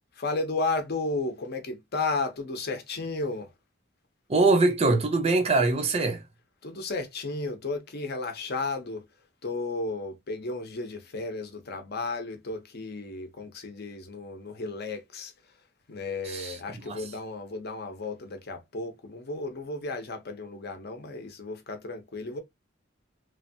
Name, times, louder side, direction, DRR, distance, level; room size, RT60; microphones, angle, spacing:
voice 1, 0.1-3.5 6.6-9.1 9.4-15.3 15.9-22.4, left 3 dB, 50° left, 0.7 m, -33 dB
voice 2, 4.3-6.2 16.3-16.5 16.9-17.0, right 3 dB, 30° right, 0.6 m, -23 dB
3.1 x 2.2 x 2.7 m
head